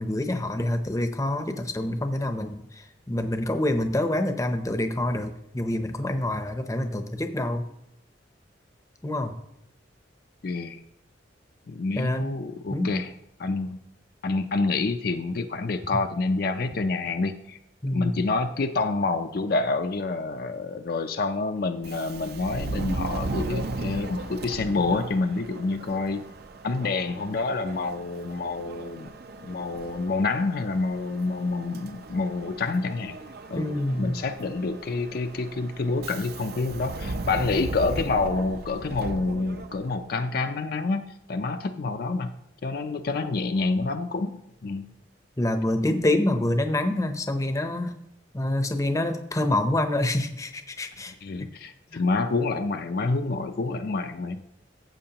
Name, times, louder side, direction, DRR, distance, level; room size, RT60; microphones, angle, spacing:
voice 1, 0.0-7.7 9.0-9.4 12.0-12.4 12.7-12.9 17.8-18.2 33.6-34.2 45.4-48.0 48.3-51.5 51.9-52.0, left 1 dB, 15° left, 7 dB, 0.7 m, -27 dB
voice 2, 10.4-10.8 11.7-13.1 13.4-13.8 14.2-17.6 17.9-26.3 26.6-29.1 29.4-33.2 33.5-33.7 34.0-41.0 41.3-44.4 44.6-44.9 51.2-54.4, left 3 dB, 50° left, 6 dB, 0.5 m, -28 dB
Subway metro underground, 21.8-40.1, right 2 dB, 55° right, 0.6 m, -37 dB
14.0 x 7.6 x 2.9 m, 0.80 s
head